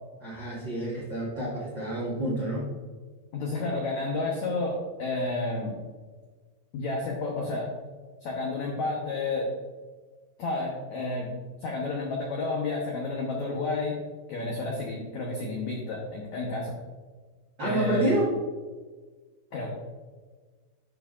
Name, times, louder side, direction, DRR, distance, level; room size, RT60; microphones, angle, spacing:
voice 1, 0.2-2.7 17.6-18.3, right 1 dB, 80° right, -6 dB, 1.0 m, -28 dB
voice 2, 3.3-5.8 6.7-7.7 8.2-9.5 10.4-11.3 11.6-14.0 14.3-16.7 17.6-18.2 19.5-19.7, left 3 dB, 80° left, -2 dB, 1.6 m, -31 dB
10.5 x 5.9 x 2.5 m, 1.4 s
omnidirectional pair, 4.8 m